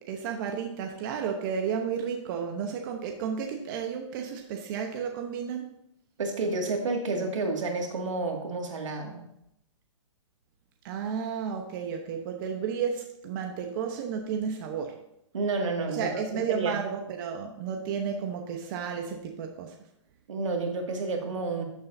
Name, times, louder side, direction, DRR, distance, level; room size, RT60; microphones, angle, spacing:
voice 1, 0.0-5.7 10.8-14.9 15.9-19.7, right 7 dB, 40° right, 3 dB, 0.9 m, -32 dB
voice 2, 6.2-9.2 15.3-16.1 16.5-16.8 20.3-21.6, right 3 dB, 80° right, 2 dB, 2.1 m, -30 dB
13.0 x 7.0 x 2.7 m, 0.80 s
hypercardioid pair, 145°, 16 cm